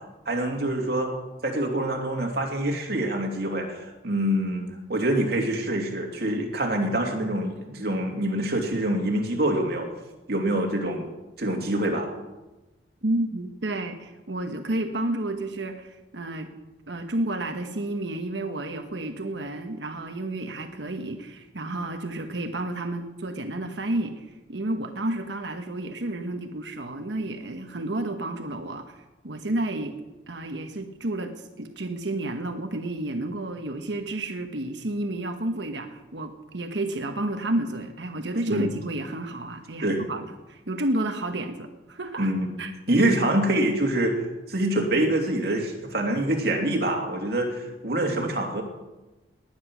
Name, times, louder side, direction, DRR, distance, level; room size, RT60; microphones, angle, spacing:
voice 1, 0.3-1.1 1.4-9.9 10.3-11.1 11.4-12.1 38.5-38.7 39.8-40.1 42.2-42.5 42.9-44.1 44.5-48.6, right 1 dB, 55° right, 1 dB, 2.8 m, -25 dB
voice 2, 13.0-16.5 16.9-29.9 30.3-42.3 42.6-42.7, right 1 dB, 70° right, 6 dB, 1.2 m, -31 dB
19.5 x 10.0 x 6.2 m, 1.1 s
head